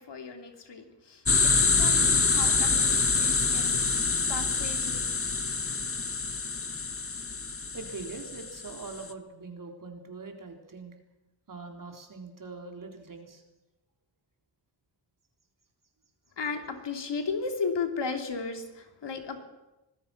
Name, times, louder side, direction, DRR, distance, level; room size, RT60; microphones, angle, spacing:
voice 1, 0.0-4.0 4.3-5.0 16.4-19.4, left 4 dB, 65° left, 5 dB, 3.0 m, -35 dB
sound 1, 1.3-9.0, left 4 dB, 30° left, 1.3 m, -26 dB
voice 2, 7.7-10.9 11.5-13.4, right 3 dB, 45° right, 3 dB, 3.9 m, -42 dB
25.5 x 19.5 x 6.0 m, 0.96 s
wide cardioid pair, 120°, 45 cm